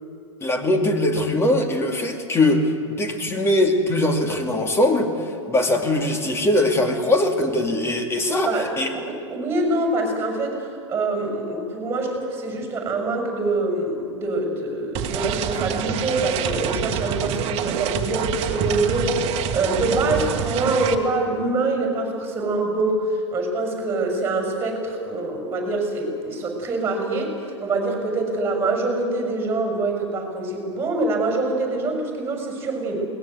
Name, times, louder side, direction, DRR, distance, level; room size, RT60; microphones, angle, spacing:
voice 1, 0.4-5.1 5.5-8.9, left 1 dB, 15° left, 4 dB, 2.6 m, -21 dB
voice 2, 8.4-19.2 19.5-23.0 23.3-27.3 27.6-33.1, right 2 dB, 15° right, 3 dB, 6.5 m, -25 dB
sound 1, 14.9-20.9, right 8 dB, 40° right, 1.7 m, -26 dB
22.0 x 19.0 x 8.1 m, 2.4 s
figure-of-eight pair, 100°, 16 cm